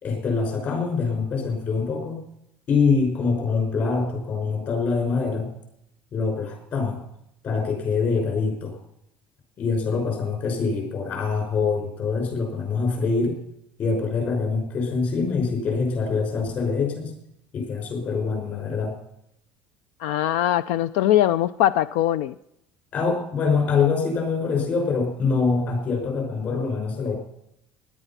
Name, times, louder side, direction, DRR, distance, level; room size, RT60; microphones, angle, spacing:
voice 1, 0.0-2.2 2.7-5.5 6.1-7.0 7.4-8.8 9.6-13.4 13.8-17.1 17.5-19.0 22.9-27.2, left 4 dB, 40° left, 3 dB, 5.6 m, -24 dB
voice 2, 20.0-22.3, left 12 dB, 85° left, 16 dB, 0.4 m, -21 dB
17.0 x 11.0 x 5.8 m, 0.79 s
cardioid pair, 155°, 5 cm